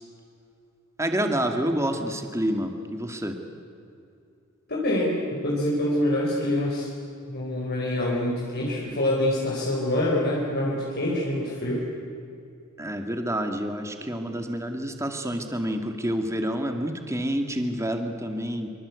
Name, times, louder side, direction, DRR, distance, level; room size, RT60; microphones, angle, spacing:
voice 1, 1.0-3.4 12.8-18.7, equal, 15° right, 5 dB, 2.3 m, -28 dB
voice 2, 4.7-6.9 7.3-11.9, left 1 dB, 50° left, -3 dB, 4.5 m, -25 dB
25.5 x 25.0 x 8.4 m, 2.6 s
head